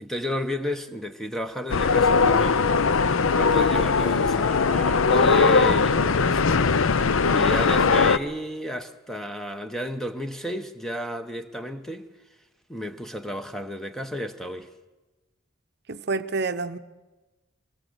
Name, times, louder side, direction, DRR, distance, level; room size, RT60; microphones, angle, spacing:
voice 1, 0.0-12.1 12.7-14.7, equal, ahead, 0.9 m, -32 dB
sound 1, 1.7-8.2, left 4 dB, 70° left, 0.6 m, -20 dB
voice 2, 15.9-16.8, right 3 dB, 50° right, 0.7 m, -28 dB
22.0 x 18.0 x 8.0 m
head